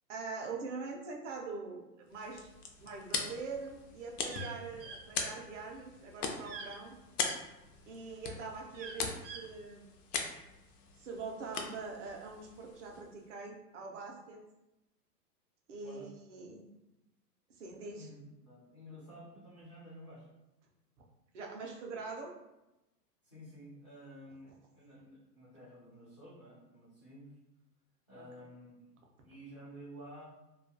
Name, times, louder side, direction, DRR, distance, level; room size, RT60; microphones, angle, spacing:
voice 1, 0.1-2.5 2.8-6.9 7.9-9.9 11.0-14.4 15.7-16.6 17.6-18.1 21.3-22.3 28.2-28.5, right 4 dB, 50° right, 0 dB, 0.5 m, -43 dB
sound 1, 2.1-13.3, left 5 dB, 70° left, 0.6 m, -41 dB
sound 2, 3.5-7.4 7.9-9.5, right 5 dB, 90° right, 0.6 m, -47 dB
voice 2, 18.0-20.3 23.2-27.3 28.1-28.9 29.2-30.2, equal, 20° left, -11 dB, 0.3 m, -52 dB
2.3 x 2.3 x 2.5 m, 0.96 s
hypercardioid pair, 155°, 49 cm